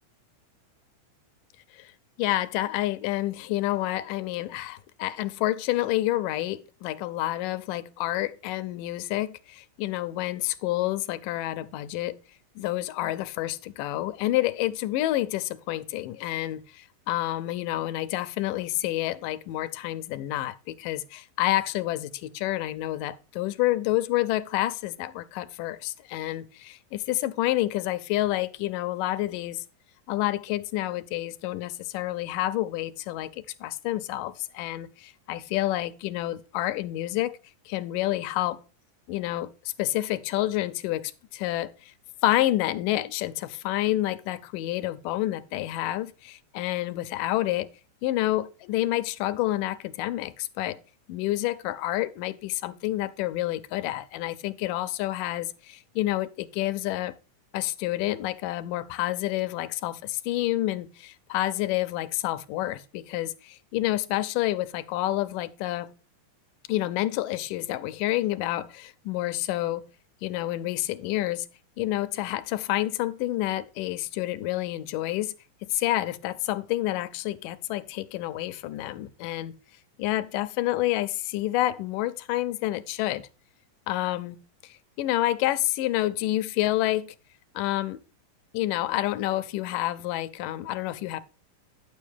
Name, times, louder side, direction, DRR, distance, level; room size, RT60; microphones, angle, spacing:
voice 1, 2.2-12.2 12.6-29.6 30.1-37.4 37.7-38.6 39.1-41.9 42.2-47.7 48.0-50.8 51.1-57.1 57.5-65.9 66.7-69.9 70.2-71.5 71.8-75.3 75.6-79.5 80.0-83.3 83.9-87.2 87.6-88.0 88.5-91.2, left 15 dB, 80° left, 2.2 m, -29 dB
9.8 x 7.4 x 3.4 m
omnidirectional pair, 3.9 m